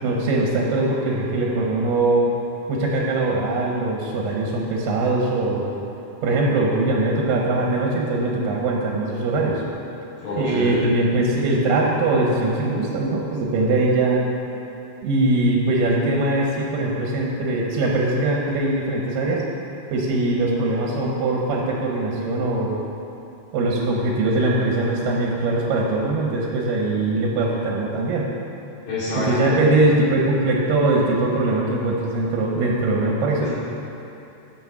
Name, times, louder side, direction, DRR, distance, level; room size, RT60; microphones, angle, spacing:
voice 1, 0.0-2.3 2.7-5.7 6.2-9.6 10.4-14.2 15.0-19.4 19.9-22.8 23.5-28.3 29.2-33.5, right 2 dB, 85° right, -2 dB, 2.8 m, -21 dB
voice 2, 10.2-10.8 28.8-29.6 33.4-33.5, left 2 dB, 70° left, -12 dB, 4.1 m, -26 dB
11.0 x 5.0 x 7.3 m, 2.8 s
omnidirectional pair, 3.9 m